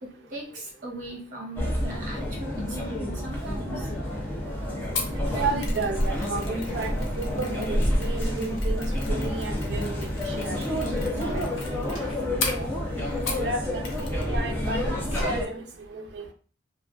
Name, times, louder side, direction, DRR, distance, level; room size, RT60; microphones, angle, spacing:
voice 1, 0.0-4.1 4.4-4.5, right 1 dB, 40° right, -2 dB, 0.8 m, -40 dB
sound 1, 1.6-15.4, left 1 dB, 10° left, 0.5 m, -29 dB
Mechanisms, 5.0-13.5 13.8-14.3 14.6-14.7, left 4 dB, 85° left, 0.6 m, -37 dB
voice 2, 5.3-10.6 11.3-11.4 12.6-12.7 13.4-14.9 15.2-15.6 15.9-16.3, right 3 dB, 60° right, 3 dB, 0.3 m, -32 dB
sound 2, 10.6-15.5, equal, 70° left, 1.0 m, -51 dB
2.4 x 2.2 x 2.4 m, 0.41 s
head